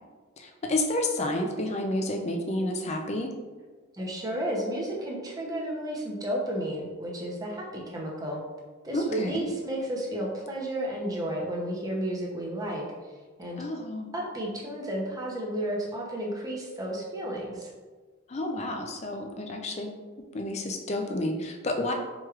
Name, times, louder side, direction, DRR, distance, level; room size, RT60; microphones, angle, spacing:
voice 1, 0.4-3.3 8.9-9.5 13.6-14.1 18.3-19.9 20.3-21.9, left 1 dB, 30° left, 3 dB, 0.4 m, -30 dB
voice 2, 3.9-8.4 8.8-12.8 13.4-13.6 14.1-17.7, right 1 dB, 15° right, -3 dB, 0.6 m, -32 dB
4.5 x 3.0 x 2.4 m, 1.4 s
head